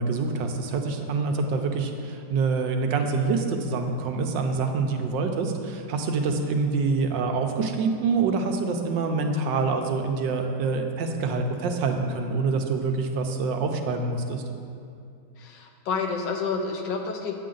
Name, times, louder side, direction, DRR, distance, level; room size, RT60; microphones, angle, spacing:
voice 1, 0.0-14.4, right 4 dB, 75° right, 4 dB, 1.3 m, -26 dB
voice 2, 15.4-17.4, left 5 dB, 70° left, 3 dB, 1.4 m, -29 dB
8.6 x 7.5 x 3.8 m, 2.5 s
omnidirectional pair, 2.1 m